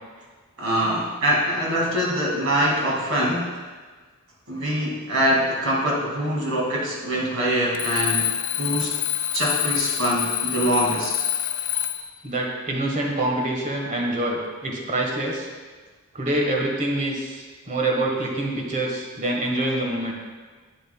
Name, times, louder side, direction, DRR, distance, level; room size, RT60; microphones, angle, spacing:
voice 1, 0.6-3.5 4.5-8.3 8.6-8.9 9.3-11.1, equal, 65° right, -3 dB, 2.3 m, -23 dB
Alarm, 7.7-12.2, left 12 dB, 65° left, 0.5 m, -26 dB
voice 2, 12.2-15.5 16.1-20.1, right 1 dB, 35° right, -1 dB, 1.4 m, -26 dB
10.5 x 7.8 x 2.3 m, 1.4 s
head